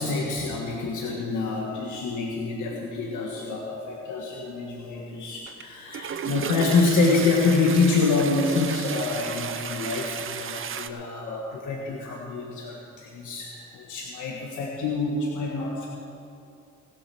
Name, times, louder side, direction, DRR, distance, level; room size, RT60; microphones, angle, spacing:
voice 1, 0.0-15.9, left 3 dB, 80° left, -2 dB, 1.7 m, -26 dB
Toilet flush, 5.5-5.6 5.9-10.9, right 7 dB, 45° right, 0.7 m, -34 dB
19.5 x 7.6 x 6.3 m, 2.7 s
cardioid pair, 90°, 30 cm